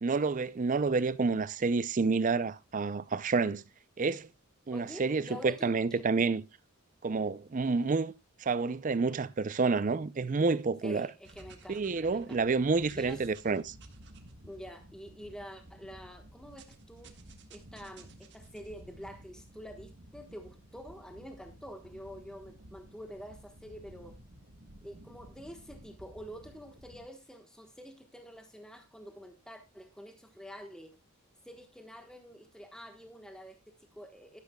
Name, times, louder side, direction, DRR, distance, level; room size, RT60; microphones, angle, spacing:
voice 1, 0.0-3.6 4.0-4.3 4.7-6.4 7.0-8.1 8.4-11.1 11.7-13.7, right 4 dB, 35° right, 0.5 m, -29 dB
voice 2, 4.7-6.0 10.8-12.6 12.9-13.2 14.4-17.1 17.5-24.2 24.8-31.0 31.4-34.4, equal, 5° left, 1.2 m, -47 dB
sound 1, 11.2-27.1, right 1 dB, 55° right, 1.5 m, -53 dB
12.0 x 11.5 x 2.2 m
head